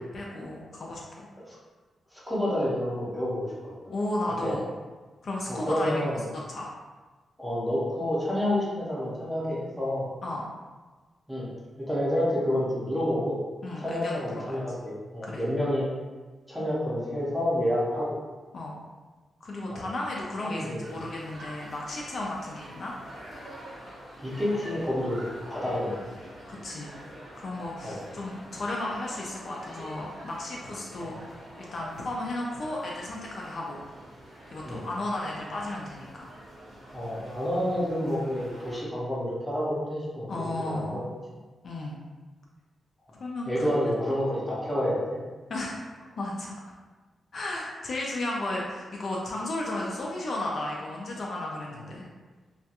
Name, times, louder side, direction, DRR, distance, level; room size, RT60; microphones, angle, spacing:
voice 1, 0.1-1.3 3.9-4.7 5.2-6.0 6.3-6.7 10.2-10.4 13.6-14.4 15.2-15.4 18.5-18.8 19.4-22.9 26.5-27.0 27.4-31.2 31.6-33.8 34.5-36.3 40.3-41.0 41.6-42.0 43.2-43.6 44.1-44.2 45.5-45.8 46.2-46.5 47.3-52.1, left 1 dB, 45° left, -3 dB, 0.3 m, -34 dB
voice 2, 2.1-3.9 4.4-4.6 5.5-6.2 7.4-10.0 11.3-11.5 11.8-13.4 13.8-15.9 16.5-18.2 19.7-19.9 20.4-20.8 24.2-25.2 25.5-26.2 27.8-28.0 34.6-34.8 36.9-40.3 40.6-41.0 43.1-43.2 43.5-45.2, left 1 dB, ahead, -7 dB, 0.6 m, -29 dB
sound 1, 20.8-38.8, equal, 50° right, 0.7 m, -46 dB
2.4 x 2.2 x 2.7 m, 1.3 s
wide cardioid pair, 165°, 0 cm